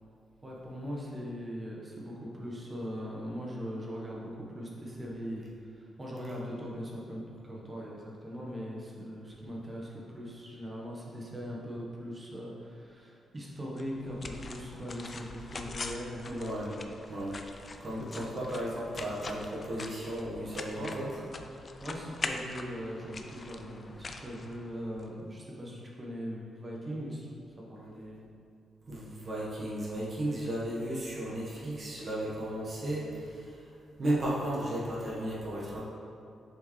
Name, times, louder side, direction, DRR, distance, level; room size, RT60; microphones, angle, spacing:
voice 1, 0.4-16.5 18.0-18.2 18.6-18.9 20.7-21.3 21.8-27.3 27.6-28.3, equal, 25° right, -3 dB, 1.0 m, -40 dB
sound 1, 13.8-25.1, left 3 dB, 35° left, 0.4 m, -43 dB
voice 2, 16.2-16.8 17.1-17.4 17.8-21.1 28.9-35.8, right 1 dB, 40° right, -7 dB, 1.2 m, -34 dB
6.5 x 4.5 x 3.2 m, 2.5 s
cardioid pair, 120°, 0 cm